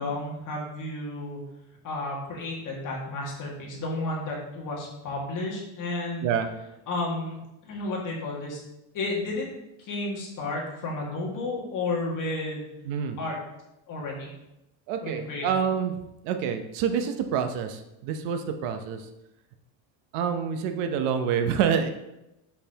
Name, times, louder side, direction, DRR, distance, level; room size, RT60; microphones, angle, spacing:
voice 1, 0.0-1.4 1.8-6.3 6.9-8.6 8.9-9.5 9.8-12.7 13.2-13.4 13.9-14.3 15.0-15.5, left 2 dB, 40° left, -3 dB, 1.9 m, -32 dB
voice 2, 12.8-13.2 14.9-16.0 16.2-19.0 20.1-21.9, right 7 dB, 80° right, 7 dB, 0.9 m, -27 dB
6.4 x 5.7 x 2.9 m, 0.90 s
cardioid pair, 150°, 47 cm